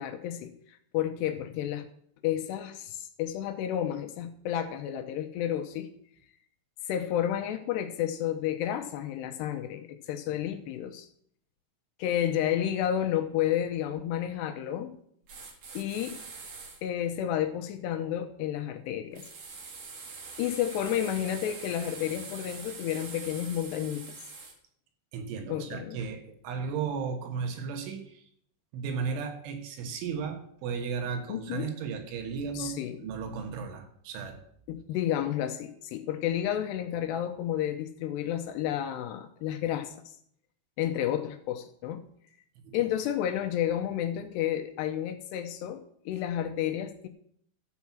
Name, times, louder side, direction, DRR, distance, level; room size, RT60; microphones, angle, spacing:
voice 1, 0.0-1.9 2.2-5.9 6.9-11.1 12.0-15.0 15.7-16.2 16.8-19.2 20.4-24.2 25.5-26.0 31.3-31.7 32.6-33.0 34.7-39.9 40.8-42.0 42.7-47.1, left 11 dB, 75° left, 7 dB, 2.7 m, -31 dB
sound 1, 15.3-16.8 19.1-24.5, right 4 dB, 55° right, 2.0 m, -44 dB
voice 2, 25.1-28.3 28.7-32.8 33.0-34.4 42.6-42.9, right 6 dB, 85° right, 6 dB, 3.9 m, -35 dB
13.5 x 6.0 x 7.2 m, 0.65 s
omnidirectional pair, 5.3 m